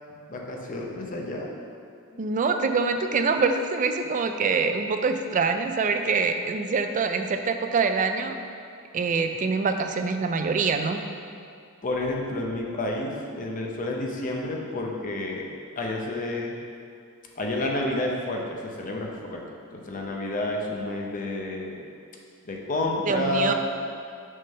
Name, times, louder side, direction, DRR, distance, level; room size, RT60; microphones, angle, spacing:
voice 1, 0.1-1.5 2.1-2.2 11.8-15.5 15.8-16.5 17.4-19.4 19.7-21.8 22.5-23.5, left 2 dB, 35° left, 0 dB, 0.6 m, -30 dB
voice 2, 2.2-8.4 8.9-11.0 23.1-23.5, right 4 dB, 35° right, 7 dB, 0.3 m, -25 dB
6.4 x 3.7 x 5.4 m, 2.4 s
head